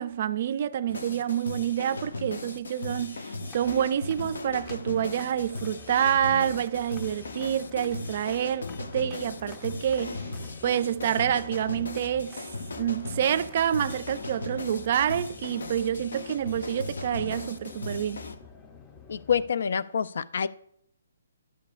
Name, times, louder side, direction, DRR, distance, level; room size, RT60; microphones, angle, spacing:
voice 1, 0.0-10.2 10.6-12.4 12.8-18.2, right 10 dB, 45° right, 0.3 m, -27 dB
sound 1, 0.9-18.3, left 3 dB, 85° left, 0.8 m, -38 dB
sound 2, 3.4-19.5, left 5 dB, 15° left, 0.6 m, -48 dB
voice 2, 19.1-20.5, left 7 dB, 65° left, 0.3 m, -27 dB
12.0 x 6.7 x 2.4 m
hypercardioid pair, 160°, 0 cm